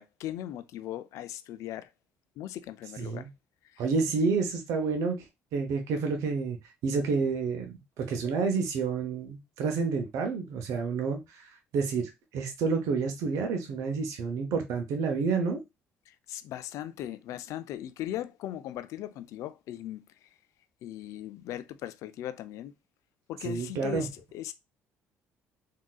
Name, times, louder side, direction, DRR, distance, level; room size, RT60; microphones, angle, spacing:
voice 1, 0.0-1.9 2.4-3.3 3.7-3.8 16.1-20.0 20.8-22.7 23.3-24.5, left 12 dB, 70° left, 0.4 m, -38 dB
voice 2, 3.0-3.3 3.8-5.2 5.5-6.6 6.8-15.6 23.4-24.1, right 4 dB, 70° right, 0.8 m, -29 dB
3.7 x 2.7 x 2.3 m
supercardioid pair, 75°, 6 cm